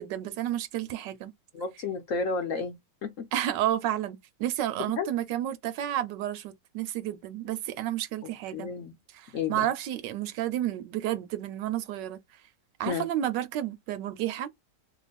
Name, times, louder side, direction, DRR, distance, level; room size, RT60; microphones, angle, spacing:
voice 1, 0.0-1.3 3.3-8.7 9.1-12.4 12.8-14.5, right 12 dB, 75° right, 1.2 m, -31 dB
voice 2, 1.5-2.8 3.0-3.2 4.8-5.1 8.2-8.9 9.3-9.7 12.9-13.0, left 4 dB, 60° left, 0.8 m, -32 dB
3.1 x 2.1 x 4.0 m
omnidirectional pair, 2.0 m